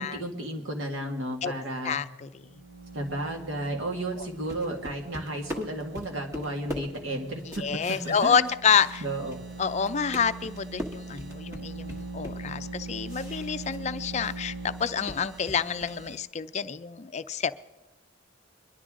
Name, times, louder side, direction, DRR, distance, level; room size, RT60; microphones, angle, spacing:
voice 1, 0.0-2.0 2.9-7.4 8.0-8.5 9.0-9.4, right 1 dB, 80° right, 2 dB, 2.0 m, -33 dB
voice 2, 1.8-2.3 4.2-4.3 7.5-9.0 9.6-17.5, left 7 dB, 35° left, 12 dB, 0.4 m, -28 dB
sound 1, 2.3-16.2, right 3 dB, 50° right, 1.0 m, -42 dB
sound 2, 4.2-9.5 9.8-14.4 14.7-16.1, equal, 15° right, 1.2 m, -41 dB
23.0 x 11.5 x 3.7 m, 1.1 s
head